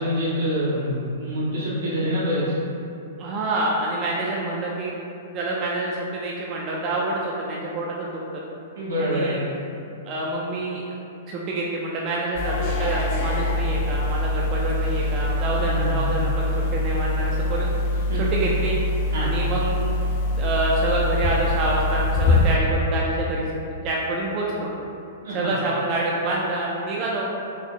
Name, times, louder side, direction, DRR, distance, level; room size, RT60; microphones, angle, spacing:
voice 1, 0.0-2.5 8.7-9.5 15.6-16.0 18.1-18.5 19.1-19.3 25.2-25.5, equal, 80° right, -8 dB, 1.4 m, -26 dB
voice 2, 3.2-4.9 5.3-8.4 9.0-9.4 10.1-10.8 11.3-17.7 18.2-18.8 19.2-19.9 20.3-23.5 23.8-24.7 25.3-27.3, right 2 dB, 30° right, -4 dB, 0.4 m, -27 dB
sound 1, 12.4-22.6, left 2 dB, 45° left, 0.4 m, -24 dB
3.9 x 2.0 x 3.8 m, 2.8 s
hypercardioid pair, 145°, 0 cm